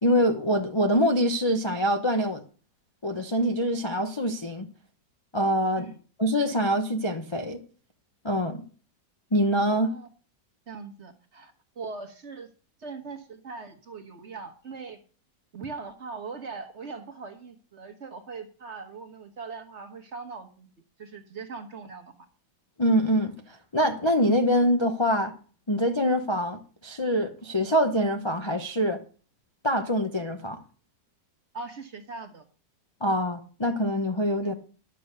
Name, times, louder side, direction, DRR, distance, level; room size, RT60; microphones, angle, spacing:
voice 1, 0.0-2.4 3.0-4.7 5.3-5.9 6.2-7.6 8.2-8.6 9.3-9.9 22.8-25.3 25.7-29.0 29.6-30.6 33.0-34.5, equal, 25° left, 0.7 m, -25 dB
voice 2, 10.7-12.5 12.8-15.0 15.5-20.7 21.0-22.1 31.5-32.4 34.4-34.5, right 4 dB, 40° right, 1.4 m, -40 dB
11.5 x 6.8 x 6.6 m
omnidirectional pair, 1.9 m